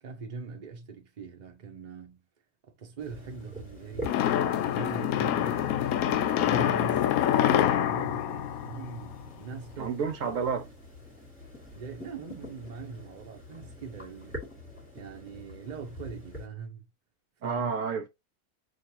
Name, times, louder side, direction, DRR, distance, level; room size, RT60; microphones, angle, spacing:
voice 1, 0.0-2.2 2.8-7.1 7.5-9.9 11.7-14.5 14.9-16.8 17.4-17.7, right 4 dB, 35° right, 0.8 m, -41 dB
sound 1, 3.0-16.5, left 1 dB, 10° left, 1.7 m, -46 dB
sound 2, 4.0-9.4, left 10 dB, 80° left, 1.0 m, -26 dB
voice 2, 9.8-10.7 17.4-18.1, right 6 dB, 65° right, 1.0 m, -30 dB
6.3 x 2.6 x 2.8 m
omnidirectional pair, 1.5 m